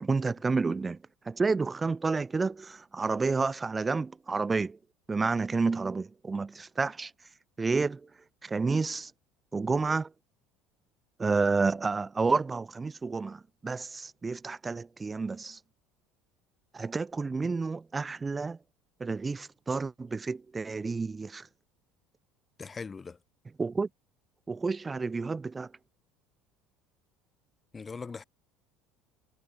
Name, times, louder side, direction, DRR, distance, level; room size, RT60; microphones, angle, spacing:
voice 1, 0.0-1.0 1.3-4.8 5.1-7.1 7.6-8.0 8.4-9.1 9.5-10.1 11.2-15.6 16.7-18.6 19.0-21.4 23.6-23.9 24.5-25.7, right 4 dB, 15° right, 0.6 m, -30 dB
voice 2, 22.6-23.2 27.7-28.2, left 5 dB, 20° left, 2.0 m, -40 dB
cardioid pair, 135°, 0 cm